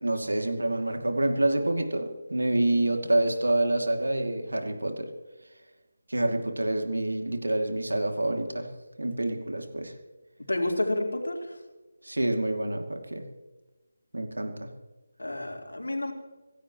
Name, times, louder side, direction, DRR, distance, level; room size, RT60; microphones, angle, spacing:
voice 1, 0.0-5.1 6.1-8.7 9.0-9.9 12.0-13.2 14.1-14.7, right 1 dB, 70° right, 5 dB, 2.6 m, -27 dB
voice 2, 10.5-11.6 15.2-16.1, left 1 dB, 70° left, 1 dB, 3.9 m, -29 dB
25.5 x 16.5 x 3.1 m, 1.2 s
figure-of-eight pair, 155°, 0 cm